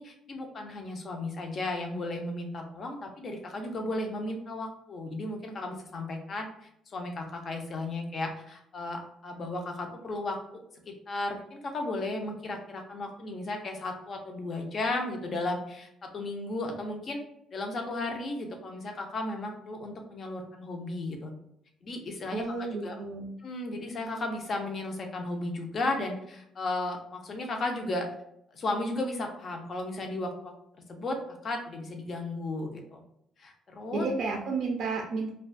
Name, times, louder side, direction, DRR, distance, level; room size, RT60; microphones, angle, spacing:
voice 1, 0.0-17.2 17.5-21.3 21.8-23.0 23.4-28.1 28.5-30.5 30.9-33.0 33.4-34.1, left 2 dB, 40° left, 3 dB, 0.5 m, -35 dB
voice 2, 22.3-23.3 33.9-35.3, right 4 dB, 60° right, 1 dB, 0.3 m, -31 dB
2.4 x 2.2 x 2.5 m, 0.74 s
cardioid pair, 130°, 0 cm